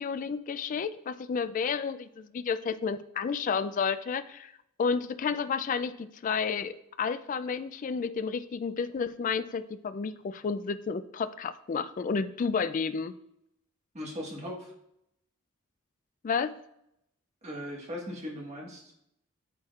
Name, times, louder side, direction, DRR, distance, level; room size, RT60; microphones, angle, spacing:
voice 1, 0.0-4.5 4.8-13.1 16.2-16.5, left 5 dB, 35° left, 12 dB, 0.3 m, -31 dB
voice 2, 13.9-14.7 17.4-18.9, equal, 30° right, -2 dB, 1.6 m, -38 dB
8.5 x 7.8 x 2.4 m, 0.79 s
head